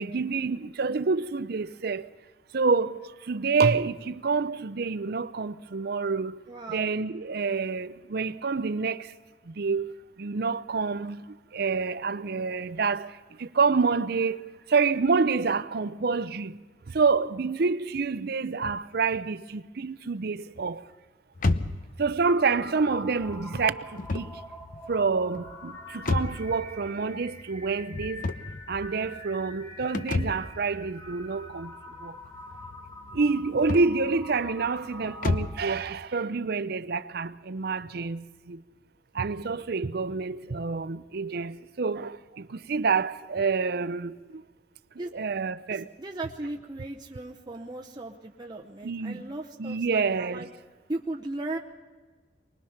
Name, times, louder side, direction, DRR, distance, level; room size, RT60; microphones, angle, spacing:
voice 1, 0.0-2.1 2.5-6.4 6.7-9.1 9.5-16.6 16.9-20.8 22.0-24.4 24.9-28.3 28.7-31.7 32.0-32.2 33.1-38.6 39.1-44.4 45.1-45.9 48.8-49.3 49.6-50.5, right 4 dB, 60° right, 0.6 m, -28 dB
voice 2, 6.5-6.9 45.0-45.1 45.7-50.5 50.9-51.6, right 2 dB, 25° right, 0.8 m, -37 dB
sound 1, 21.3-35.7, left 2 dB, 50° left, 0.8 m, -34 dB
sound 2, 22.2-35.7, left 1 dB, 20° left, 1.3 m, -45 dB
24.0 x 20.0 x 5.8 m
head